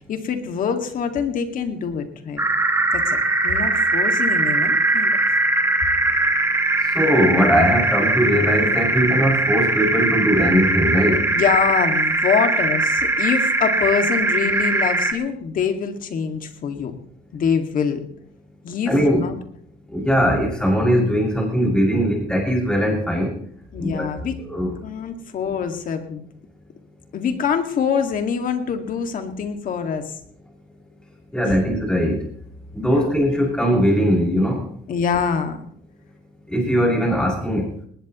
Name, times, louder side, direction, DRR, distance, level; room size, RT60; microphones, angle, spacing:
voice 1, 0.1-2.4 2.9-3.2 3.4-5.1 11.3-16.9 17.3-18.0 18.6-18.9 19.2-19.3 23.7-24.4 24.8-26.2 27.1-30.1 32.9-33.1 34.9-35.6, left 6 dB, 55° left, 6 dB, 2.2 m, -24 dB
sound 1, 2.4-15.1, right 2 dB, 15° right, 1.9 m, -20 dB
voice 2, 6.9-11.3 18.9-19.3 19.9-23.4 23.8-24.1 24.5-24.7 31.3-32.2 32.7-34.7 36.5-37.7, equal, 5° left, -2 dB, 6.8 m, -20 dB
19.5 x 19.5 x 3.1 m, 0.66 s
cardioid pair, 110°, 17 cm